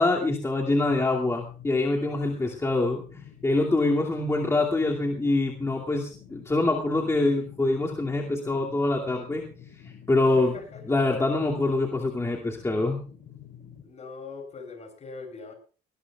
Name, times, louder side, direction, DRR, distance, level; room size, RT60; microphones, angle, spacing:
voice 1, 0.0-9.4 10.1-10.5 10.9-13.0, left 2 dB, 15° left, -1 dB, 2.6 m, -25 dB
sound 1, 0.8-13.8, left 9 dB, 65° left, 4.2 m, -48 dB
voice 2, 2.1-2.4 10.3-11.0 13.8-15.5, left 4 dB, 40° left, 5 dB, 7.4 m, -42 dB
20.0 x 19.0 x 2.4 m, 0.38 s
cardioid pair, 110°, 17 cm